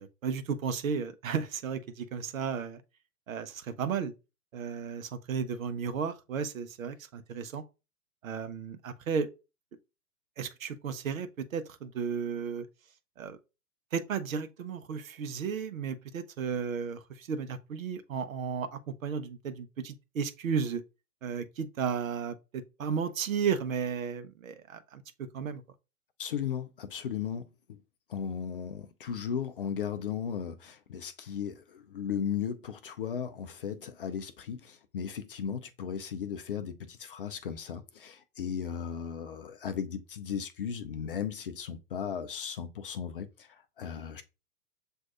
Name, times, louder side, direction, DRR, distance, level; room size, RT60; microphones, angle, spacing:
voice 1, 0.0-2.8 3.3-4.1 4.5-7.6 8.2-9.3 10.4-12.7 13.2-13.4 13.9-20.8 21.2-25.6, right 6 dB, 60° right, 0.8 m, -34 dB
voice 2, 26.2-27.8 28.1-44.2, left 8 dB, 40° left, 0.4 m, -36 dB
7.3 x 2.6 x 2.4 m
figure-of-eight pair, 110°, 45 cm